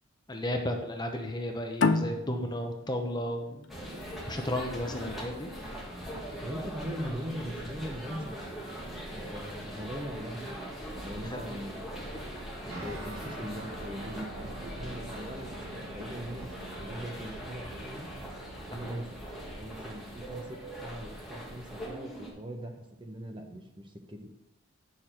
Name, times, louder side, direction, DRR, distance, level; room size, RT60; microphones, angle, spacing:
voice 1, 0.3-3.7 4.3-5.5 11.3-11.4 18.7-18.8, left 1 dB, 20° left, 3 dB, 0.8 m, -33 dB
sound 1, 1.8-5.0, left 3 dB, 55° left, 0.5 m, -30 dB
sound 2, 3.7-22.3, equal, ahead, 1.9 m, -41 dB
voice 2, 6.1-8.5 9.1-11.9 12.6-18.1 18.7-24.2, equal, 20° right, 4 dB, 0.9 m, -41 dB
sound 3, 12.7-21.0, right 2 dB, 80° right, 3.7 m, -49 dB
9.6 x 6.6 x 4.4 m, 0.89 s
head